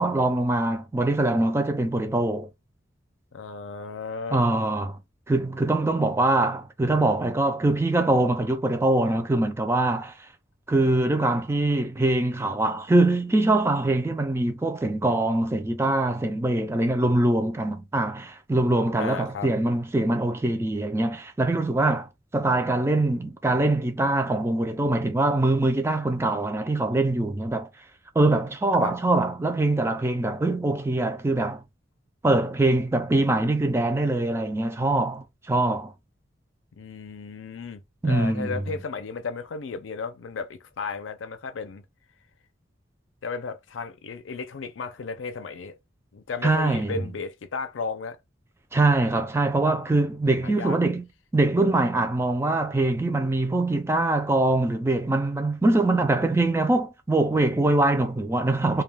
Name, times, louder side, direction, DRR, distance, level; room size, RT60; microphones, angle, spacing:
voice 1, 0.0-2.5 4.3-5.0 5.3-10.1 10.7-27.7 28.2-31.6 32.2-35.9 38.0-38.5 46.4-46.9 48.7-51.0 51.3-58.8, right 2 dB, 15° right, 0.3 m, -23 dB
voice 2, 3.3-4.4 19.0-19.5 28.8-28.9 36.7-41.8 43.2-45.8 46.1-48.2 50.4-50.8, left 4 dB, 90° left, 0.5 m, -34 dB
2.3 x 2.2 x 3.3 m
head